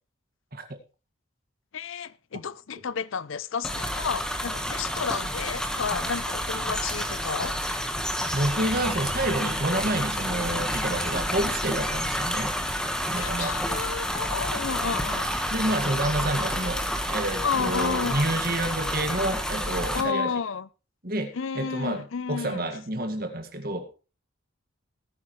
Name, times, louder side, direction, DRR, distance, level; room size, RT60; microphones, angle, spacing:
voice 1, 1.7-7.6 13.2-15.3 17.4-18.3 19.9-20.7 21.3-22.7, left 6 dB, 70° left, 0.5 m, -31 dB
sound 1, 3.6-20.0, equal, 5° left, 1.4 m, -29 dB
voice 2, 8.3-12.5 13.0-13.6 15.5-16.8 17.1-20.3 21.0-23.9, right 1 dB, 45° right, 1.9 m, -29 dB
19.0 x 9.9 x 3.2 m
head